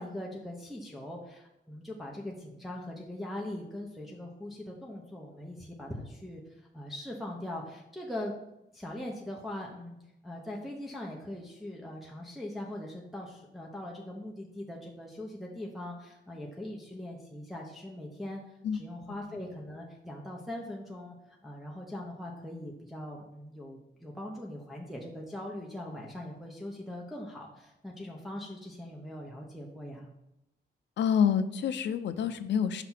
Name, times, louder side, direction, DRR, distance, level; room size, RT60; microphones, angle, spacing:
voice 1, 0.0-8.3 8.7-10.0 10.2-18.4 18.7-30.1, left 1 dB, ahead, -3 dB, 0.8 m, -41 dB
voice 2, 31.0-32.8, left 7 dB, 75° left, 11 dB, 0.5 m, -27 dB
5.9 x 3.3 x 5.7 m, 0.86 s
wide cardioid pair, 135°, 18 cm